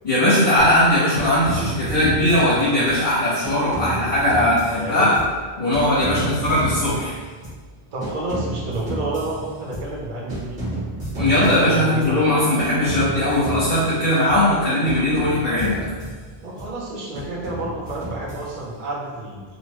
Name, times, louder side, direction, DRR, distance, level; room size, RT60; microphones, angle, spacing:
voice 1, 0.0-5.1 5.6-7.1 11.2-15.8, left 1 dB, 60° left, -10 dB, 1.0 m, -19 dB
sound 1, 0.6-0.9 1.1-3.1 3.4-5.5 5.7-7.7 8.0-10.0 10.3-12.2 12.6-14.6 14.9-16.8 17.1-18.8, right 1 dB, 35° right, 1.0 m, -32 dB
voice 2, 4.7-5.3 5.9-6.6 7.9-10.9 11.1-12.4 16.4-19.4, right 2 dB, 55° right, -3 dB, 0.7 m, -30 dB
2.8 x 2.2 x 2.9 m, 1.4 s
omnidirectional pair, 1.1 m